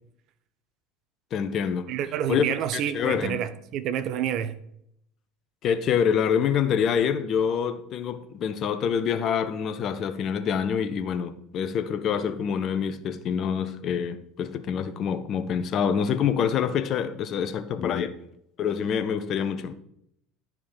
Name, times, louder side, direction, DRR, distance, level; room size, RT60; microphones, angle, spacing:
voice 1, 1.3-1.9 2.3-2.4 2.7-3.4 5.6-18.1 18.6-19.7, left 7 dB, 45° left, 0.9 m, -26 dB
voice 2, 1.9-4.6, right 10 dB, 55° right, 0.8 m, -28 dB
10.5 x 4.7 x 5.5 m
hypercardioid pair, 70°, 0 cm